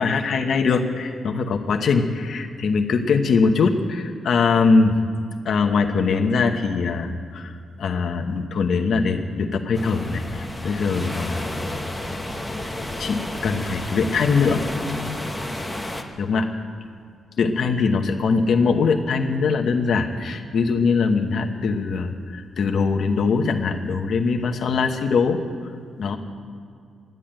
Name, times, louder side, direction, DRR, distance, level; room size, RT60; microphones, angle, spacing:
voice 1, 0.0-5.0 5.4-11.4 12.0-12.2 13.0-15.2 16.2-16.5 17.4-25.4 26.0-26.2, left 4 dB, 50° left, 3 dB, 1.0 m, -22 dB
sound 1, 9.7-16.0, left 1 dB, ahead, 1.0 m, -31 dB
13.5 x 11.0 x 9.0 m, 2.2 s
wide cardioid pair, 175°, 0 cm